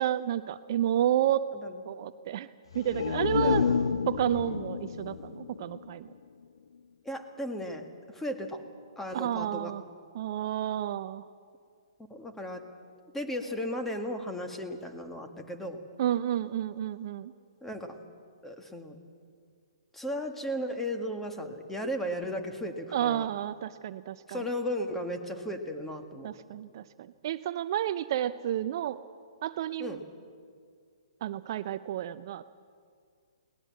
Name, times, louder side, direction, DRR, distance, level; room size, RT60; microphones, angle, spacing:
voice 1, 0.0-1.4 1.9-2.5 2.7-3.7 4.1-6.1 9.1-9.8 10.1-11.2 16.0-17.3 22.9-24.4 26.2-29.0 29.4-30.0 31.2-32.5, right 11 dB, 50° right, 13 dB, 0.6 m, -30 dB
sound 1, 2.7-6.4 6.8-6.9, left 6 dB, 70° left, 0.8 m, -30 dB
voice 2, 3.3-3.9 7.1-7.9 8.1-8.6 9.0-9.7 12.1-12.6 13.1-15.8 17.6-18.0 18.4-19.0 19.9-23.3 24.3-26.3 29.8-30.0, equal, 5° left, 5 dB, 1.9 m, -35 dB
22.0 x 19.0 x 7.6 m, 2.2 s
figure-of-eight pair, 130°, 3 cm